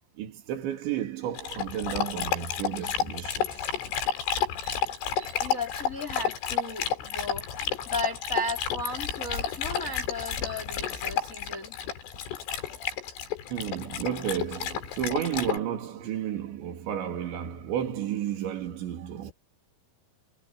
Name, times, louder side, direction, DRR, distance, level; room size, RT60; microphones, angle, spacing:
voice 1, 0.2-3.6 4.6-4.8 5.2-5.3 13.5-19.3, right 10 dB, 70° right, 5.1 m, -32 dB
Dog, 1.4-15.6, left 8 dB, 85° left, 6.3 m, -31 dB
voice 2, 5.4-11.8, left 1 dB, 20° left, 3.5 m, -35 dB
omnidirectional pair, 5.5 m